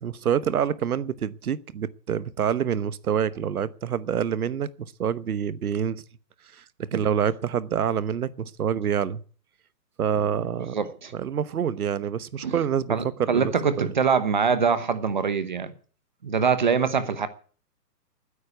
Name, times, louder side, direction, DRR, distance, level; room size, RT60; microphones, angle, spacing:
voice 1, 0.0-4.7 5.0-6.0 6.5-6.6 6.9-9.2 10.0-10.7 11.1-12.9 13.2-13.5 13.8-13.9, right 8 dB, 60° right, 1.1 m, -26 dB
voice 2, 10.7-11.1 12.4-12.6 12.9-15.7 16.2-17.3, right 6 dB, 30° right, 0.9 m, -24 dB
13.0 x 9.8 x 8.3 m
hypercardioid pair, 180°, 48 cm